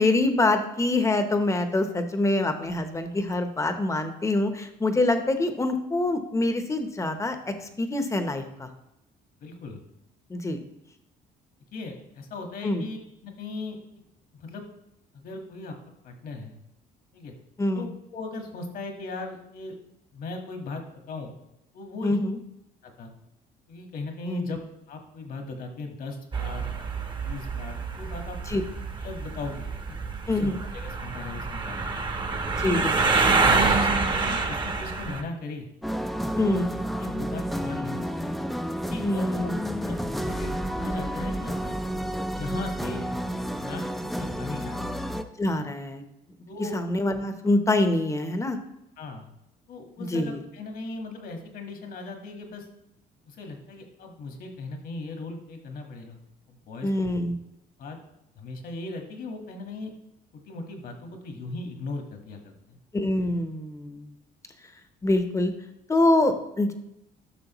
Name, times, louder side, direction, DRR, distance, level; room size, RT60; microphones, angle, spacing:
voice 1, 0.0-8.7 10.3-10.6 12.6-12.8 17.6-17.9 22.0-22.4 24.3-24.6 28.5-28.6 30.3-30.6 32.6-32.9 36.4-36.7 39.0-39.6 45.4-46.0 46.7-48.6 50.0-50.4 56.8-57.4 62.9-64.1 65.0-65.5 65.9-66.7, left 2 dB, 20° left, 8 dB, 0.9 m, -25 dB
voice 2, 9.4-9.8 11.7-13.0 13.2-13.8 14.3-14.7 15.1-15.7 16.0-16.5 17.1-17.3 17.7-19.7 20.1-21.3 21.7-22.2 22.8-23.1 23.7-24.6 24.9-26.6 27.2-28.4 29.0-30.0 30.4-32.0 32.6-32.8 33.4-33.9 34.2-35.7 36.3-36.6 37.0-38.3 38.9-39.5 39.8-41.8 42.3-43.0 43.6-45.0 46.5-46.8 49.0-49.3 49.7-52.6 53.2-56.2 56.5-57.1 57.8-58.0 58.3-59.9 60.3-62.8, left 3 dB, 60° left, 4 dB, 1.6 m, -38 dB
sound 1, 26.3-35.2, right 4 dB, 30° right, 1.0 m, -27 dB
sound 2, 35.8-45.2, equal, ahead, 0.5 m, -31 dB
12.0 x 6.3 x 3.0 m, 0.84 s
cardioid pair, 110°, 17 cm